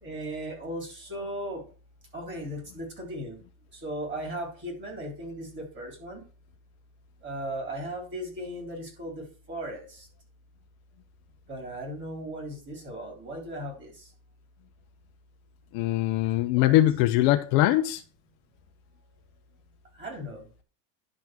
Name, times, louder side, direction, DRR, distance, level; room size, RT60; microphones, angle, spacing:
voice 1, 0.0-1.6 2.1-3.4 3.7-6.2 7.2-10.1 11.5-13.9 16.5-16.7 20.0-20.4, right 1 dB, 25° right, 3.4 m, -37 dB
voice 2, 15.7-18.0, left 14 dB, 55° left, 0.7 m, -22 dB
10.5 x 3.9 x 6.0 m
supercardioid pair, 150°, 43 cm